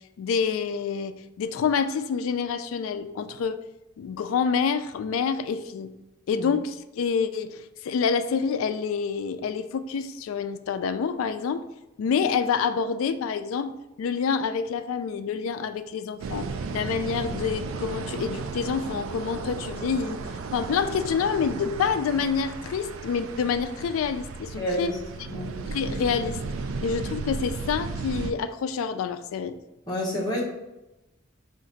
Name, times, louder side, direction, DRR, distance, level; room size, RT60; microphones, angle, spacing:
voice 1, 0.2-3.6 4.0-6.0 6.3-11.7 12.0-20.2 20.5-25.0 25.7-26.4 26.8-29.6, left 6 dB, 80° left, 10 dB, 0.3 m, -27 dB
sound 1, 16.2-28.3, right 4 dB, 70° right, 0.3 m, -35 dB
voice 2, 24.6-24.9 25.3-25.6 29.9-30.4, equal, 20° left, -5 dB, 1.0 m, -28 dB
4.9 x 2.5 x 3.9 m, 0.97 s
head